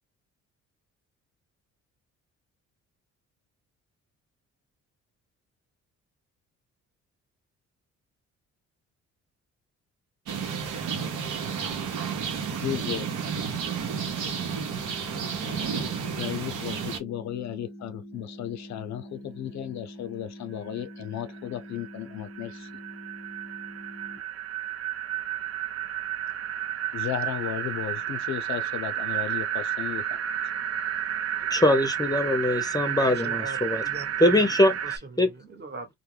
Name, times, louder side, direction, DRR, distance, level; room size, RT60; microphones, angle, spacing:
sound 1, 10.3-17.0, right 6 dB, 85° right, 0.9 m, -31 dB
voice 1, 12.6-13.1 14.5-14.7 15.4-22.7 26.9-30.2, left 11 dB, 65° left, 0.5 m, -35 dB
sound 2, 14.2-24.2, equal, 15° right, 1.2 m, -45 dB
sound 3, 20.8-20.9 21.2-35.0, right 10 dB, 55° right, 0.6 m, -31 dB
voice 2, 31.5-33.8 34.2-34.7 35.2-35.3, left 1 dB, 15° left, 0.6 m, -22 dB
voice 3, 33.0-34.5 34.8-35.9, right 3 dB, 35° right, 1.1 m, -40 dB
2.3 x 2.1 x 3.1 m
cardioid pair, 90°, 30 cm